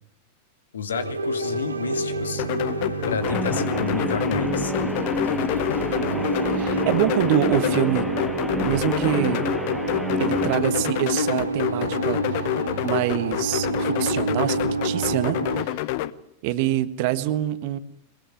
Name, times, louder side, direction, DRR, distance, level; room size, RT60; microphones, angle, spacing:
voice 1, 0.7-2.5 3.1-4.7, left 6 dB, 70° left, 12 dB, 1.9 m, -30 dB
sound 1, 0.9-15.6, right 3 dB, 80° right, 2.2 m, -29 dB
sound 2, 2.4-16.1, left 15 dB, 50° left, 1.0 m, -28 dB
Guitar, 3.2-10.6, left 1 dB, 5° left, 1.4 m, -30 dB
voice 2, 6.5-8.1 8.5-9.6 10.2-12.5 12.8-15.9 16.4-17.8, right 13 dB, 50° right, 13 dB, 1.6 m, -25 dB
22.5 x 22.0 x 9.2 m, 0.70 s
figure-of-eight pair, 90°, 0 cm